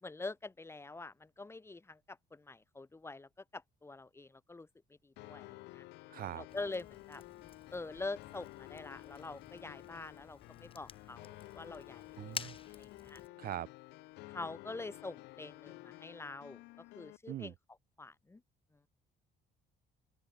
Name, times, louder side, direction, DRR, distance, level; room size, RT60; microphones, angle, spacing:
voice 1, 0.0-4.7 5.0-5.9 6.3-7.2 7.7-13.2 14.3-16.6 16.9-17.5 18.0-18.4, left 3 dB, 15° left, 1.5 m, -45 dB
sound 1, 5.2-17.2, left 20 dB, 85° left, 1.1 m, -52 dB
voice 2, 6.1-6.5 12.2-12.6 13.4-13.7 17.3-17.5, right 12 dB, 60° right, 1.3 m, -41 dB
Fire, 6.5-13.3, left 6 dB, 30° left, 2.1 m, -51 dB
open air
cardioid pair, 110°, 17 cm